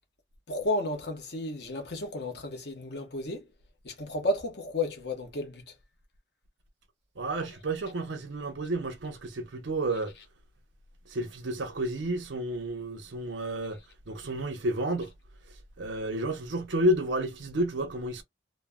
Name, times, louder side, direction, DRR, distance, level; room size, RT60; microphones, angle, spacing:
voice 1, 0.5-3.4 3.8-5.6, left 1 dB, 60° left, 1.0 m, -32 dB
voice 2, 7.2-10.1 11.1-13.8 14.1-15.1 15.8-18.2, right 1 dB, 75° right, 0.7 m, -31 dB
3.0 x 2.2 x 2.2 m
head